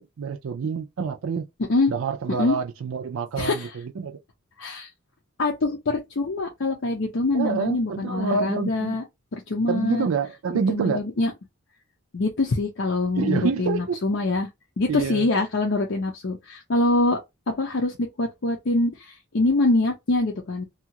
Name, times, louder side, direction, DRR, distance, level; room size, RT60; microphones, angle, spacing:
voice 1, 0.0-1.5 1.9-4.2 7.3-9.0 9.7-11.0 13.1-14.0 14.9-15.3, right 5 dB, 75° right, 0.4 m, -27 dB
voice 2, 3.4-3.7 4.6-4.9 5.4-9.0 9.3-10.1 10.7-11.3 12.1-14.5 14.8-17.2 17.5-20.6, left 2 dB, 60° left, 0.6 m, -24 dB
2.7 x 2.3 x 2.8 m
head